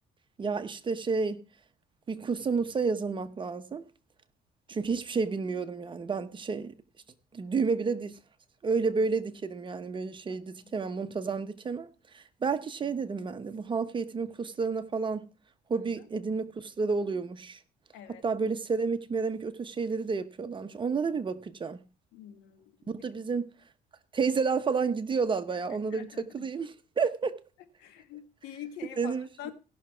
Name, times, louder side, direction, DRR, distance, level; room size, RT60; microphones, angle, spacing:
voice 1, 0.4-1.4 2.1-3.8 4.7-6.7 7.3-8.2 8.6-15.3 15.7-17.6 18.2-21.8 22.9-23.5 24.1-27.4 29.0-29.5, right 4 dB, 30° right, 1.0 m, -30 dB
voice 2, 10.3-10.7 15.7-15.8 17.9-18.2 22.1-22.9 25.7-26.4 27.8-29.5, left 10 dB, 90° left, 1.4 m, -46 dB
16.5 x 6.1 x 4.5 m
cardioid pair, 110°, 17 cm